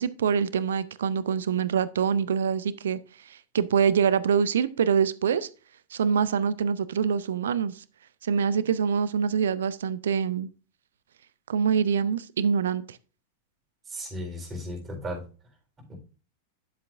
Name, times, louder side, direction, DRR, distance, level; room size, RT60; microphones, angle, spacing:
voice 1, 0.0-5.5 5.9-7.8 8.2-10.5 11.5-13.0, right 7 dB, 65° right, 0.5 m, -25 dB
voice 2, 13.9-15.2 15.9-16.0, equal, 20° right, 3.8 m, -35 dB
10.5 x 7.4 x 2.5 m
figure-of-eight pair, 90°, 0 cm